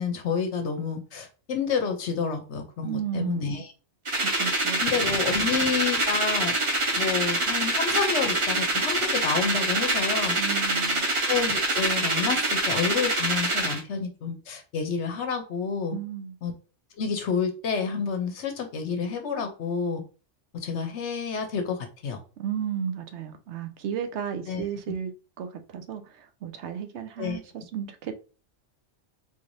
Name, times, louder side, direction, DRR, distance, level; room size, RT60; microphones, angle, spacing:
voice 1, 0.0-3.7 4.8-6.6 7.0-10.4 11.3-16.0 16.4-16.5 17.0-20.0 20.5-22.2 24.5-24.6 27.2-27.4, left 5 dB, 70° left, 0.9 m, -29 dB
voice 2, 2.8-3.6 4.2-4.8 5.4-5.5 10.4-11.1 15.9-16.4 22.4-25.1 25.4-28.1, right 8 dB, 70° right, 0.8 m, -33 dB
sound 1, 4.0-13.8, right 2 dB, 35° right, 0.6 m, -25 dB
3.8 x 3.1 x 2.6 m
omnidirectional pair, 1.2 m